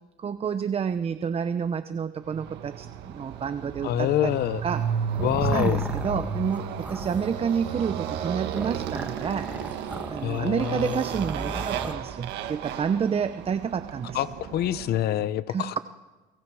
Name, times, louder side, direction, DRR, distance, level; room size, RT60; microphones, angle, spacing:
voice 1, 0.2-4.8 5.5-9.5 10.1-14.2 15.5-15.8, right 7 dB, 35° right, 11 dB, 0.9 m, -29 dB
Motorcycle, 2.3-15.0, right 7 dB, 85° right, 1.6 m, -33 dB
voice 2, 3.8-4.6 5.2-5.8 10.2-11.0 14.1-15.8, left 12 dB, 70° left, 14 dB, 0.9 m, -26 dB
sound 1, 4.7-11.9, right 1 dB, 10° right, 1.8 m, -37 dB
29.5 x 23.0 x 4.9 m, 1.2 s
cardioid pair, 110°, 17 cm